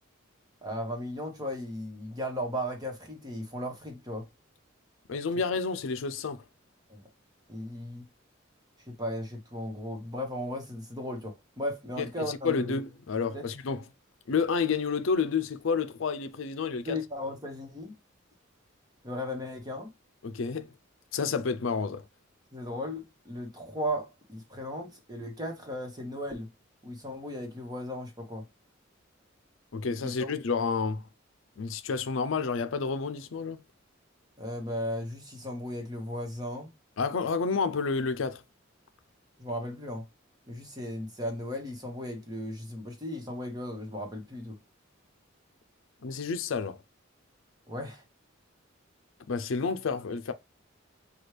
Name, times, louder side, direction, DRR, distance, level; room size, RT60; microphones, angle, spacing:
voice 1, 0.6-4.3 6.9-7.0 7.5-8.0 8.9-12.8 13.2-13.5 16.9-17.9 19.0-19.9 22.5-26.5 26.8-28.5 30.0-30.3 34.4-36.7 39.4-40.1 40.5-44.6 47.7-48.0, equal, 20° right, 1.2 m, -36 dB
voice 2, 5.1-6.4 12.0-13.8 14.3-17.0 20.2-20.7 21.1-22.1 29.7-31.1 31.6-33.6 37.0-38.4 46.0-46.8 49.3-50.3, left 5 dB, 75° left, 0.5 m, -30 dB
6.1 x 2.3 x 3.2 m
head